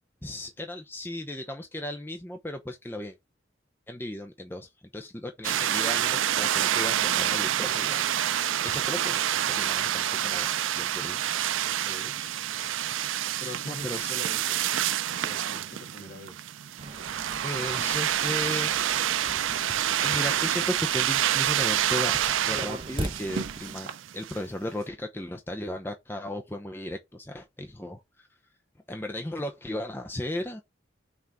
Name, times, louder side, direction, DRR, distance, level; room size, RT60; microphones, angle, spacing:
voice 1, 0.2-3.2 3.9-11.8 12.2-12.3 13.3-14.1 15.1-15.3 17.0-18.7 19.3-19.7 20.0-28.3 28.9-30.6, left 1 dB, 10° left, 0.7 m, -36 dB
sound 1, 5.4-24.4, right 11 dB, 90° right, 0.5 m, -27 dB
voice 2, 11.6-12.2 13.4-14.6 15.0-16.4, left 2 dB, 50° left, 2.3 m, -43 dB
sound 2, 11.9-13.5 13.8-14.2 14.4-15.6 15.8-16.7 17.0-17.3 17.6-18.6 18.9-24.3 24.6-24.7, right 5 dB, 70° right, 1.7 m, -54 dB
sound 3, 16.8-23.8, right 1 dB, 25° right, 0.9 m, -41 dB
5.9 x 4.0 x 4.6 m
head